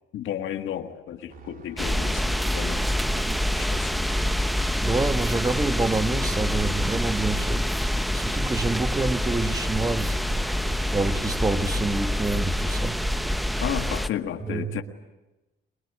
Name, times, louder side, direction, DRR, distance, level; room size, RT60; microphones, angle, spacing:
voice 1, 0.1-4.0 13.6-14.8, left 10 dB, 75° left, 1.6 m, -33 dB
sound 1, 1.3-13.3, right 5 dB, 45° right, 3.6 m, -46 dB
sound 2, 1.8-14.1, equal, ahead, 0.8 m, -26 dB
voice 2, 4.8-7.7 8.1-13.3 14.4-14.8, right 2 dB, 15° right, 1.5 m, -28 dB
23.0 x 21.5 x 10.0 m
cardioid pair, 90°, 20 cm